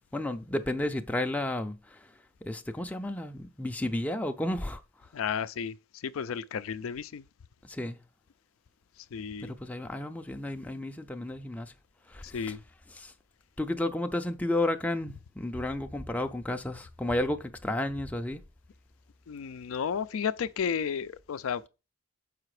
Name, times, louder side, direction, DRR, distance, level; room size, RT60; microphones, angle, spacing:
voice 1, 0.1-1.8 2.4-4.8 7.6-8.0 9.4-11.7 12.1-12.2 13.0-13.1 13.6-18.4, left 1 dB, 5° left, 0.4 m, -32 dB
voice 2, 5.1-7.3 9.1-9.5 12.2-12.6 19.3-21.7, left 7 dB, 85° left, 0.4 m, -33 dB
6.7 x 5.0 x 4.8 m
head